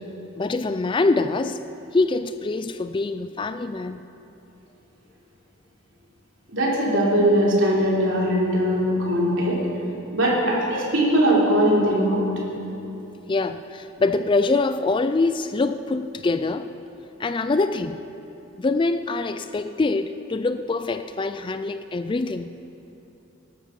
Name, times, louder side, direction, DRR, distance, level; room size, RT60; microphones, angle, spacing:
voice 1, 0.4-1.6 1.9-4.0 13.3-16.7 17.2-18.0 18.6-22.5, left 3 dB, 25° left, 11 dB, 0.3 m, -24 dB
voice 2, 6.5-9.6 10.1-12.3, equal, 60° right, -4 dB, 3.6 m, -20 dB
19.5 x 12.0 x 5.4 m, 2.9 s
head